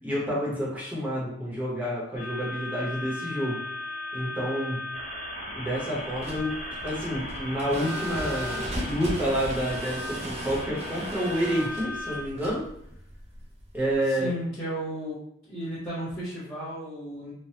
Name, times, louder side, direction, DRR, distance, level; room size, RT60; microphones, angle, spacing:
voice 1, 0.0-3.7 4.1-4.9 5.5-6.5 6.8-12.6 13.7-14.3, equal, 10° right, -6 dB, 0.8 m, -29 dB
sound 1, 2.2-12.2, left 1 dB, 40° left, 0.7 m, -37 dB
sound 2, 6.1-14.0, right 1 dB, 30° right, 0.4 m, -36 dB
voice 2, 14.1-15.2 15.5-17.3, equal, 15° left, -13 dB, 1.0 m, -34 dB
3.2 x 2.1 x 2.8 m, 0.71 s
head